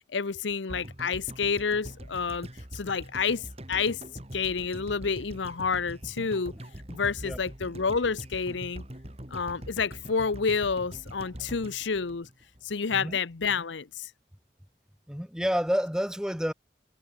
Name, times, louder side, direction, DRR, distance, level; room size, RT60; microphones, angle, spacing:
voice 1, 0.1-2.5 2.7-4.0 4.3-6.5 6.9-8.8 9.3-12.3 12.6-14.1, left 5 dB, 85° left, 0.8 m, -29 dB
sound 1, 0.7-12.9 13.2-13.3, equal, 35° right, 3.5 m, -43 dB
voice 2, 15.1-16.5, equal, 5° right, 2.1 m, -29 dB
head